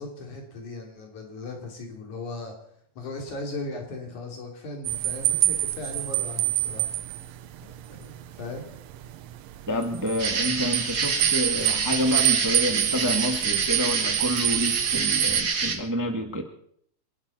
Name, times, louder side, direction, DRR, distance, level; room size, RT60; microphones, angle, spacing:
voice 1, 0.0-2.6 3.0-7.0 7.9-8.6, left 2 dB, 85° left, 2 dB, 4.5 m, -37 dB
sound 1, 4.9-15.4, right 14 dB, 75° right, 1.9 m, -27 dB
voice 2, 9.7-16.4, equal, 10° right, 4 dB, 0.8 m, -28 dB
sound 2, 10.2-15.7, right 4 dB, 40° right, 1.4 m, -27 dB
27.5 x 11.5 x 4.2 m, 0.66 s
omnidirectional pair, 3.3 m